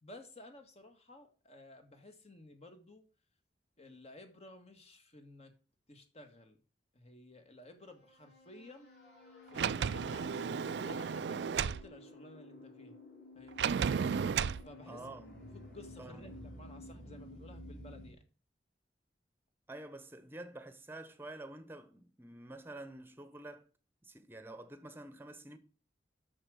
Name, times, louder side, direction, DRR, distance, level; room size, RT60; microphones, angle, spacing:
voice 1, 0.0-3.1 3.8-5.5 5.9-6.6 6.9-8.9 9.5-13.0 13.3-13.8 14.5-15.1 15.5-18.2, left 2 dB, 35° left, 1.8 m, -54 dB
sound 1, 7.8-18.1, left 1 dB, 85° left, 4.3 m, -53 dB
Sliding door, 9.5-11.8 13.6-14.6, right 6 dB, 70° right, 0.4 m, -33 dB
voice 2, 14.9-15.4 16.0-16.3 19.7-23.7 24.0-25.6, right 2 dB, 15° right, 1.0 m, -48 dB
8.8 x 6.6 x 6.4 m
head